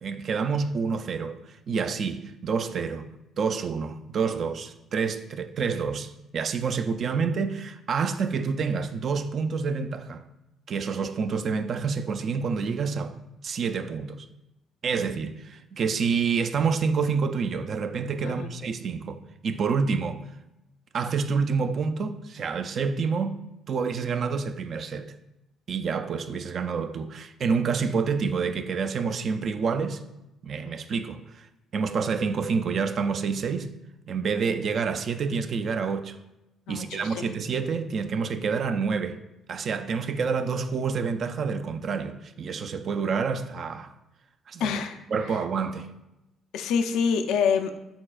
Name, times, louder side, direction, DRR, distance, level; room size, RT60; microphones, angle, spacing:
voice 1, 0.0-3.1 3.4-10.2 10.7-13.2 13.4-14.3 14.8-20.2 20.9-23.4 23.7-25.1 25.7-30.0 30.4-31.5 31.7-33.7 34.1-36.2 36.7-39.2 39.5-43.9 44.5-44.7 45.1-45.9, right 5 dB, 55° right, 0.3 m, -28 dB
voice 2, 36.7-37.3 44.6-45.0 45.3-45.4 46.5-47.8, left 6 dB, 80° left, 0.3 m, -26 dB
4.4 x 4.0 x 2.4 m
supercardioid pair, 75°, 0 cm